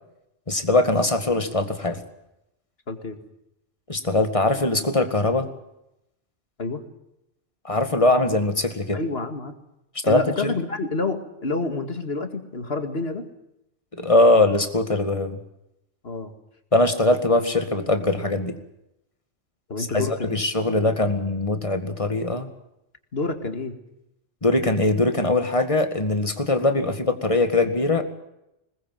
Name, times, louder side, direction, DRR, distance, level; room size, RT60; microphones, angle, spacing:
voice 1, 0.5-2.0 3.9-5.5 7.6-9.0 10.1-10.5 13.9-15.4 16.7-18.6 19.8-22.5 24.4-28.0, left 2 dB, 25° left, 7 dB, 2.1 m, -21 dB
voice 2, 8.9-9.5 10.0-13.3 16.0-16.3 19.7-20.4 23.1-23.8, left 3 dB, 55° left, 7 dB, 2.5 m, -28 dB
21.0 x 20.0 x 7.7 m, 0.86 s
omnidirectional pair, 1.2 m